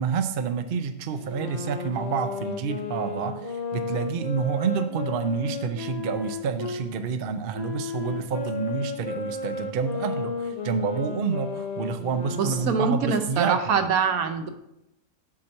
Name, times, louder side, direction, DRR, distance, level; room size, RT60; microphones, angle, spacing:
voice 1, 0.0-13.8, right 6 dB, 55° right, 9 dB, 0.6 m, -28 dB
sound 1, 1.1-6.8 7.5-12.9, left 5 dB, 50° left, 0.5 m, -34 dB
voice 2, 12.4-14.5, right 6 dB, 75° right, 8 dB, 1.2 m, -24 dB
7.5 x 4.4 x 6.4 m, 0.85 s
omnidirectional pair, 1.5 m